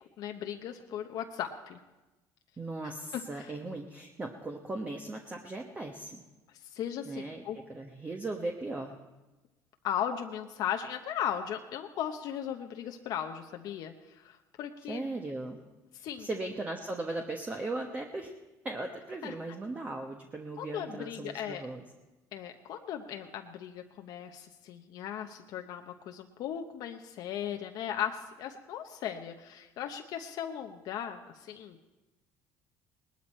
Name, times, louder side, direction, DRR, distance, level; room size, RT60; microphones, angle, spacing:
voice 1, 0.2-1.8 2.8-3.5 6.6-7.6 9.8-15.0 16.0-16.3 19.2-19.3 20.6-21.7 22.3-31.8, left 9 dB, 65° left, 4 dB, 0.9 m, -37 dB
voice 2, 2.6-6.2 7.0-8.9 14.9-15.6 15.9-18.3 18.6-21.8, right 2 dB, 20° right, 2 dB, 1.2 m, -38 dB
19.0 x 12.5 x 4.4 m, 1.1 s
cardioid pair, 105°, 7 cm